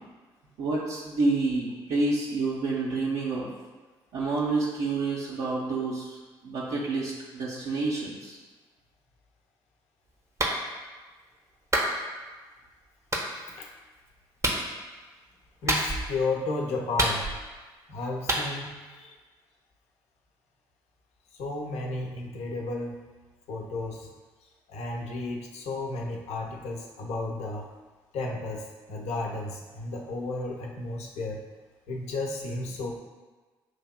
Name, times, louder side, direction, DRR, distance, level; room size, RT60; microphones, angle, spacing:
voice 1, 0.6-3.5 4.1-6.1 6.4-8.4, right 3 dB, 60° right, -6 dB, 0.7 m, -28 dB
Clapping, 10.4-10.6 11.7-11.9 13.1-13.3 14.4-14.6 15.7-16.1 17.0-17.5 18.3-18.5, right 1 dB, 25° right, 0.8 m, -26 dB
voice 2, 15.6-17.3 17.9-19.1 21.4-23.0 23.5-24.1 24.7-27.7 28.1-28.6 28.9-31.4 31.9-32.9, left 2 dB, 60° left, 0 dB, 0.7 m, -33 dB
6.1 x 2.7 x 2.2 m, 1.3 s
hypercardioid pair, 45°, 12 cm